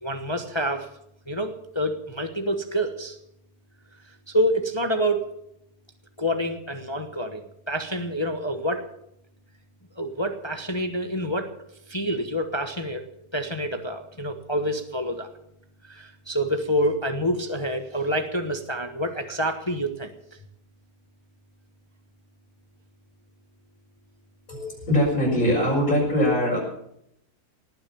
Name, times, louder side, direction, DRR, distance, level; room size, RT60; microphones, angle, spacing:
voice 1, 0.0-0.9 1.3-3.2 4.3-5.3 6.2-7.4 7.7-8.9 10.0-11.5 11.9-13.0 13.3-15.3 15.8-20.1, equal, 20° left, 6 dB, 1.1 m, -27 dB
voice 2, 24.5-26.6, equal, 60° left, -7 dB, 6.4 m, -22 dB
18.5 x 10.5 x 7.1 m, 0.77 s
omnidirectional pair, 1.7 m